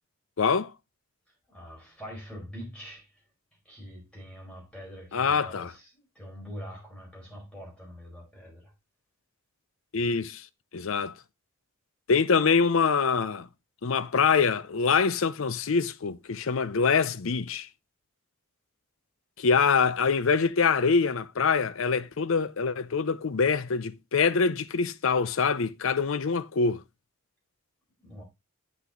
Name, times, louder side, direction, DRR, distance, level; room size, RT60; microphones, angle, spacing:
voice 1, 0.4-0.7 5.1-5.7 9.9-10.5 10.7-11.2 12.1-13.5 13.8-17.7 19.4-26.8, left 5 dB, 65° left, 0.6 m, -25 dB
voice 2, 1.5-3.1 3.6-8.7 28.0-28.2, equal, 5° left, 4.7 m, -44 dB
8.0 x 5.8 x 3.7 m
head